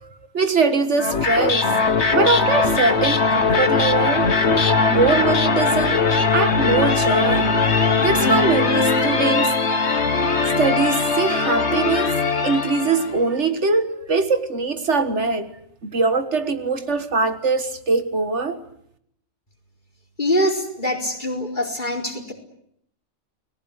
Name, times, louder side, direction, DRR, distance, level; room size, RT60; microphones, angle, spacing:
voice 1, 0.0-1.8 2.1-4.3 4.9-6.1 6.3-7.6 8.0-9.5 10.6-15.5 15.8-18.6, right 4 dB, 70° right, 2.0 m, -22 dB
sound 1, 1.0-13.2, left 4 dB, 65° left, 1.9 m, -20 dB
voice 2, 20.2-22.3, equal, 40° left, 4.6 m, -23 dB
30.0 x 20.5 x 8.2 m
omnidirectional pair, 1.2 m